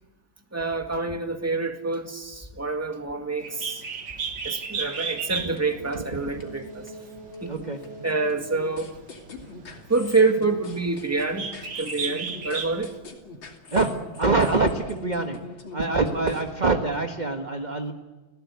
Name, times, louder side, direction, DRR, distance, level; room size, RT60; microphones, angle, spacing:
voice 1, 0.5-3.8 4.4-6.8 7.4-7.7 8.0-8.9 9.9-11.5 11.8-12.9, right 3 dB, 10° right, 5 dB, 1.7 m, -26 dB
Bird, 3.4-13.0, right 5 dB, 65° right, 2.3 m, -35 dB
sound 1, 5.4-16.4, left 2 dB, 70° left, 3.5 m, -42 dB
voice 2, 7.5-7.8 13.7-13.9 14.2-15.4 15.7-17.9, right 3 dB, 25° right, 5 dB, 1.3 m, -24 dB
29.5 x 17.5 x 8.3 m, 1.2 s
omnidirectional pair, 2.2 m